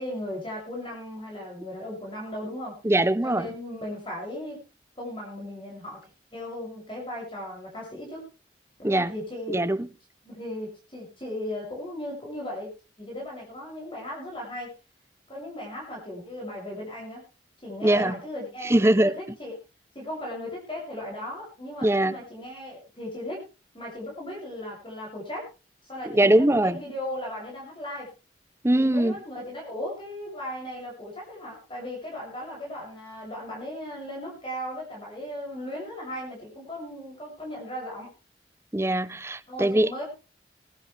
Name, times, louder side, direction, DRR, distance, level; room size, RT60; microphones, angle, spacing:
voice 1, 0.0-2.8 3.2-4.6 5.0-6.0 6.3-8.2 8.8-9.6 10.2-12.7 13.0-14.7 15.3-17.2 17.6-19.5 19.9-23.4 23.7-25.4 25.8-28.1 28.8-38.1 39.5-40.1, left 1 dB, 25° left, 7.2 m, -36 dB
voice 2, 2.8-3.5 8.8-9.1 9.5-9.9 17.8-18.2 18.6-19.1 21.8-22.1 26.1-26.8 28.6-29.2 38.7-39.9, right 1 dB, 15° right, 0.6 m, -21 dB
20.5 x 12.5 x 3.4 m
head